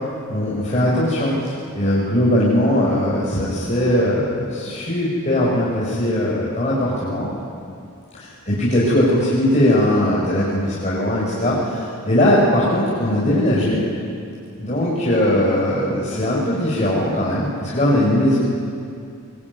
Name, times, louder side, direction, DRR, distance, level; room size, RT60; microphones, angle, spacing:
voice 1, 0.3-7.3 8.1-13.8 14.6-18.4, left 1 dB, 30° left, -6 dB, 5.9 m, -19 dB
23.5 x 23.5 x 9.8 m, 2.4 s
head